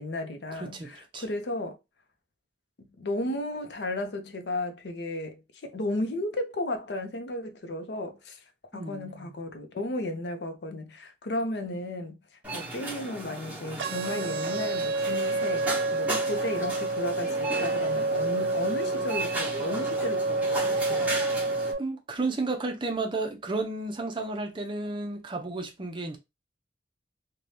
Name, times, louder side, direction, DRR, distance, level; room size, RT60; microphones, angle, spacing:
voice 1, 0.0-1.8 3.0-8.4 8.7-12.2 12.5-21.2, left 1 dB, 70° left, 0.6 m, -34 dB
voice 2, 0.6-1.2 8.7-9.4 21.8-26.2, right 3 dB, 30° right, 0.5 m, -32 dB
sound 1, 12.4-21.7, right 2 dB, 10° right, 1.0 m, -35 dB
sound 2, 13.8-21.8, right 3 dB, 90° right, 0.4 m, -29 dB
2.7 x 2.2 x 3.2 m
head